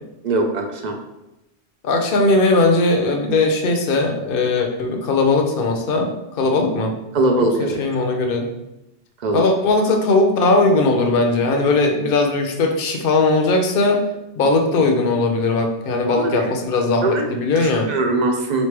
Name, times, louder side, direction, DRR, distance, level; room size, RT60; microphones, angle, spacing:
voice 1, 0.2-1.0 7.1-7.8 9.2-9.4 16.1-16.3 17.0-17.2 17.6-18.7, right 2 dB, 50° right, 3 dB, 0.6 m, -21 dB
voice 2, 1.8-6.1 6.4-6.9 7.4-8.5 9.3-14.0 14.4-17.9, left 3 dB, 60° left, 4 dB, 0.8 m, -19 dB
4.1 x 3.2 x 3.2 m, 0.93 s
omnidirectional pair, 1.2 m